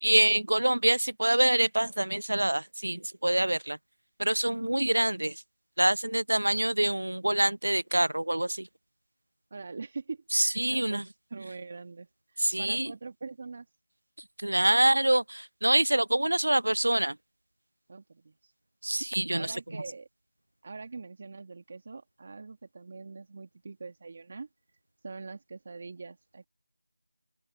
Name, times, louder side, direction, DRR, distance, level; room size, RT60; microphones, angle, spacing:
voice 1, 0.0-3.8 4.2-5.4 5.8-8.7 10.3-11.0 12.4-12.9 14.4-17.2 18.8-19.5, right 1 dB, 85° right, 0.4 m, -25 dB
voice 2, 9.5-13.7 17.9-18.5 19.3-20.1 20.6-24.5 25.0-26.5, right 4 dB, 35° right, 1.8 m, -43 dB
open air
figure-of-eight pair, 175°, 0 cm